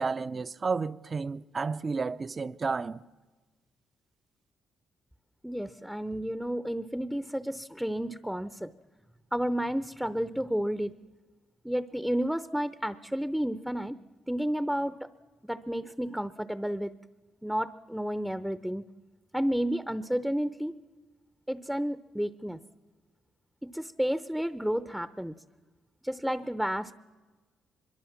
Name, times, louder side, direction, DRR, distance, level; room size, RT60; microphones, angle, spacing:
voice 1, 0.0-3.0, right 4 dB, 35° right, 0.7 m, -31 dB
voice 2, 5.4-8.7 9.3-10.9 11.6-14.0 14.3-15.1 15.4-16.9 17.4-18.8 19.3-20.8 21.5-22.6 23.6-25.4 26.0-26.9, equal, ahead, 0.7 m, -31 dB
23.5 x 22.0 x 7.3 m
cardioid pair, 80°, 0 cm